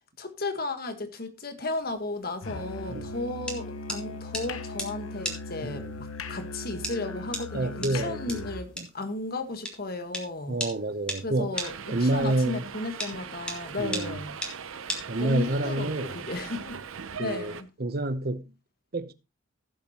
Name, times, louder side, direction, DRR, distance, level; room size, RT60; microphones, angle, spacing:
voice 1, 0.2-10.6 11.2-14.3 15.2-16.8 17.2-17.7, left 2 dB, 45° left, 1.4 m, -34 dB
sound 1, 1.7-15.6, equal, 5° left, 1.8 m, -38 dB
Musical instrument, 2.4-8.7, left 2 dB, 90° left, 1.0 m, -38 dB
voice 2, 5.6-5.9 7.5-8.5 8.8-8.9 10.5-11.5 11.9-12.6 13.8-14.2 15.1-16.1 17.2-17.5 17.8-18.4 18.9-19.1, right 2 dB, 45° right, 0.7 m, -28 dB
Subway metro underground, 11.5-17.6, right 6 dB, 80° right, 0.7 m, -40 dB
16.0 x 7.1 x 2.9 m
head